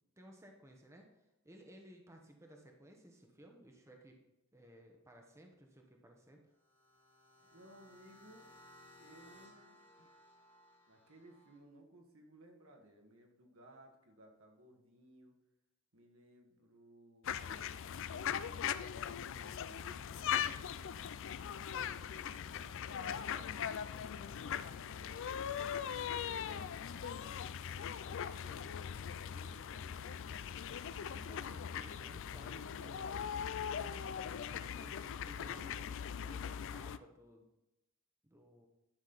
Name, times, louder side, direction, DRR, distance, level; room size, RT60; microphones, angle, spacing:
voice 1, 0.2-1.1 1.4-4.2 4.5-6.4 31.1-34.1 34.7-37.5 38.2-38.7, right 1 dB, 15° right, 2 dB, 1.0 m, -58 dB
sound 1, 6.5-11.6, left 1 dB, 25° left, 1.9 m, -61 dB
voice 2, 7.5-8.5 9.0-10.2 10.9-15.4 15.9-17.7 18.9-20.8 21.6-23.6 24.4-27.4 27.7-30.2, right 1 dB, 70° right, 2 dB, 1.6 m, -61 dB
sound 2, 17.2-37.0, left 8 dB, 60° left, 0.4 m, -40 dB
10.5 x 6.3 x 4.0 m, 0.93 s
head